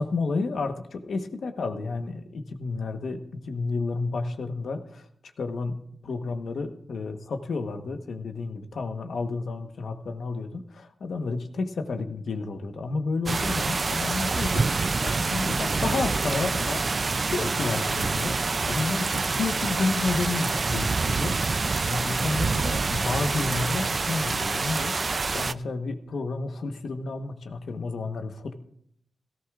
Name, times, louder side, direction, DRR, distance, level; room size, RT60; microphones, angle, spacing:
voice 1, 0.0-5.1 5.4-16.8 17.2-28.5, left 3 dB, 75° left, 7 dB, 1.1 m, -31 dB
sound 1, 13.3-25.5, right 4 dB, 45° right, 0.4 m, -26 dB
17.0 x 14.5 x 2.4 m, 0.70 s
cardioid pair, 75°, 0 cm